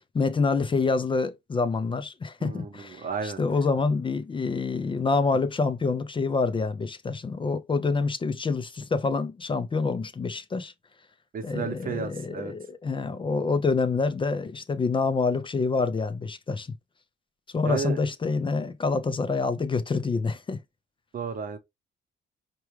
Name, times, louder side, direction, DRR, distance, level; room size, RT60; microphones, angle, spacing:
voice 1, 0.1-10.7 11.4-16.7 17.5-20.6, left 4 dB, 25° left, 0.4 m, -27 dB
voice 2, 2.4-3.4 11.3-12.5 17.6-18.0 21.1-21.6, right 6 dB, 45° right, 0.9 m, -32 dB
4.6 x 2.3 x 3.0 m
cardioid pair, 90°, 20 cm